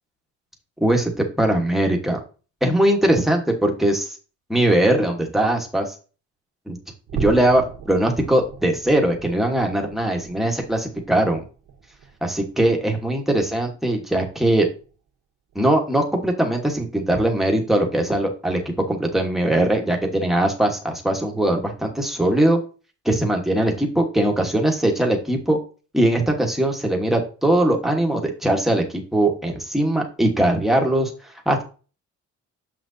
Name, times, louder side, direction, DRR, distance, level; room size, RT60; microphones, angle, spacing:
voice 1, 0.8-2.2 2.6-4.1 4.5-5.9 6.7-6.8 7.1-11.4 12.2-14.7 15.5-18.6 18.9-22.6 23.0-25.6 25.9-31.1 31.4-31.6, right 1 dB, ahead, 1 dB, 1.3 m, -20 dB
sound 1, 7.1-13.7 14.1-14.4 14.8-14.9 15.5-15.6, right 6 dB, 80° right, 1.3 m, -38 dB
7.2 x 6.0 x 2.7 m, 0.35 s
cardioid pair, 155°, 29 cm